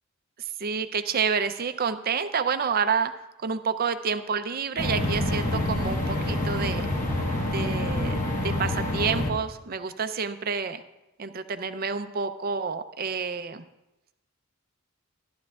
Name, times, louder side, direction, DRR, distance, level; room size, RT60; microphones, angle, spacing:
voice 1, 0.6-3.1 3.4-6.9 7.5-10.8 11.2-13.6, right 5 dB, 45° right, 10 dB, 0.5 m, -29 dB
sound 1, 4.8-9.3, left 1 dB, 35° left, 1.3 m, -27 dB
13.5 x 12.0 x 2.4 m, 0.97 s
head